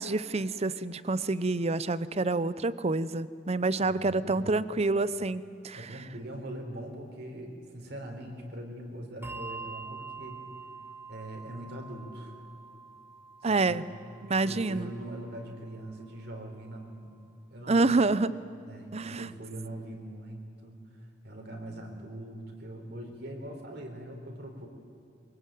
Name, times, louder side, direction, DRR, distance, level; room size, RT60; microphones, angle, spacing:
voice 1, 0.0-5.8 13.4-13.8 14.2-14.9 17.7-18.3 18.9-19.3, right 3 dB, 35° right, 16 dB, 0.7 m, -27 dB
voice 2, 3.8-4.6 5.7-10.4 11.1-12.3 13.4-13.8 14.4-17.2 17.5-17.9 18.7-24.7, right 1 dB, 65° right, 2 dB, 4.4 m, -42 dB
Bell, 9.2-16.1, right 4 dB, 15° right, 1.3 m, -46 dB
23.5 x 22.0 x 9.3 m, 2.6 s
head